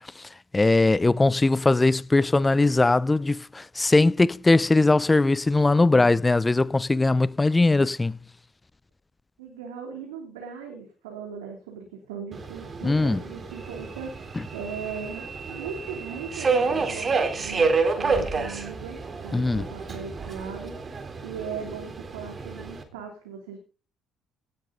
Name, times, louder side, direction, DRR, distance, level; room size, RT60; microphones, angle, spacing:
voice 1, 0.0-8.2 12.8-13.2 19.3-19.7, left 2 dB, 20° left, 0.7 m, -20 dB
voice 2, 9.4-20.8 21.2-23.6, right 6 dB, 80° right, 3.2 m, -38 dB
Subway metro underground, 12.3-22.8, right 4 dB, 35° right, 3.7 m, -29 dB
17.5 x 11.0 x 4.0 m
hypercardioid pair, 50°, 0 cm